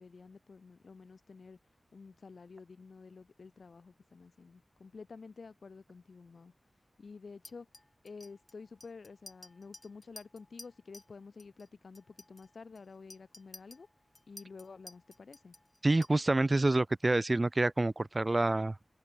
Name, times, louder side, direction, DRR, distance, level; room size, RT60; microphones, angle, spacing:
voice 1, 0.0-6.5 7.0-7.7 8.0-13.9 14.3-15.5, left 4 dB, 80° left, 3.9 m, -51 dB
Chink clink, 7.4-11.1 11.4-11.7 11.9-16.5, left 2 dB, 30° left, 2.3 m, -54 dB
voice 2, 15.8-18.7, right 2 dB, 35° right, 0.5 m, -27 dB
open air
wide cardioid pair, 75°, 0 cm